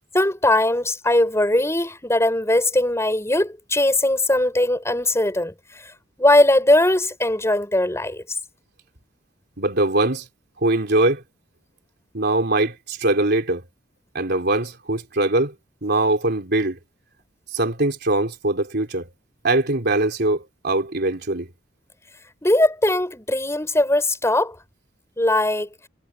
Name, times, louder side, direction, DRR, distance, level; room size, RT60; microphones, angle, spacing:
voice 1, 0.1-5.9 6.2-8.4 22.4-24.6 25.2-25.7, left 1 dB, 15° left, 7.6 m, -20 dB
voice 2, 9.6-10.3 10.6-11.2 12.1-13.6 14.1-15.5 15.8-16.8 17.5-19.1 19.4-21.5, right 2 dB, 55° right, 3.7 m, -22 dB
head